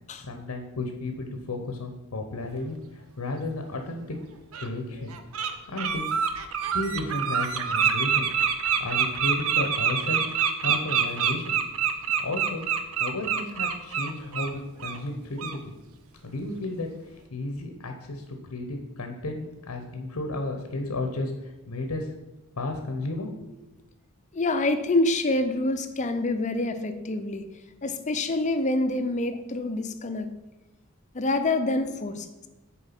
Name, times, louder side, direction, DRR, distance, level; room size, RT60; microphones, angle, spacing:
voice 1, 0.1-4.2 4.6-5.1 5.7-6.4 6.7-8.3 8.8-11.6 12.2-12.6 13.0-15.7 16.2-18.2 18.5-22.1 22.6-23.6, left 2 dB, 85° left, 4 dB, 0.9 m, -33 dB
Bird, 3.7-3.8 4.5-4.7 5.1-5.5 5.8-14.5 14.8-15.0 15.4-15.6, right 7 dB, 70° right, 0.7 m, -26 dB
voice 2, 24.3-27.5 27.8-30.3 31.1-32.5, left 2 dB, 35° left, 9 dB, 0.6 m, -26 dB
6.9 x 4.6 x 5.8 m, 1.0 s
head